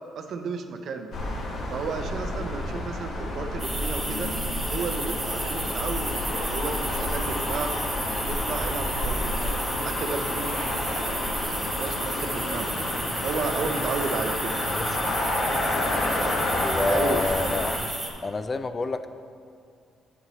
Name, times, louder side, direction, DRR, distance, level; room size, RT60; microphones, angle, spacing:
voice 1, 0.1-1.1 1.7-4.3 4.7-7.7 8.2-12.7 13.2-14.6 16.7-17.3, right 4 dB, 65° right, 6 dB, 0.6 m, -33 dB
sound 1, 1.1-17.8, left 1 dB, 70° left, 1.3 m, -29 dB
sound 2, 3.6-18.1, right 2 dB, 20° right, 1.1 m, -33 dB
voice 2, 16.5-17.9 18.2-19.1, left 3 dB, 35° left, 10 dB, 0.3 m, -28 dB
8.9 x 6.7 x 3.0 m, 2.4 s
cardioid pair, 90°, 0 cm